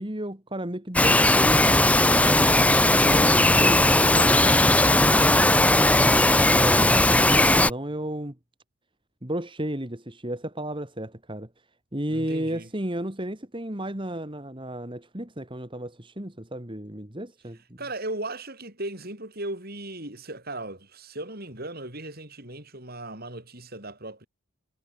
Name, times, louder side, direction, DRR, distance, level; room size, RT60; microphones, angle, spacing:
voice 1, 0.0-2.6 3.0-8.4 9.2-11.5 11.9-17.8, right 1 dB, 25° right, 2.1 m, -33 dB
Bird vocalization bird call bird song, 1.0-7.7, left 1 dB, 5° left, 0.9 m, -18 dB
voice 2, 12.1-12.7 17.8-24.3, right 2 dB, 45° right, 7.7 m, -37 dB
head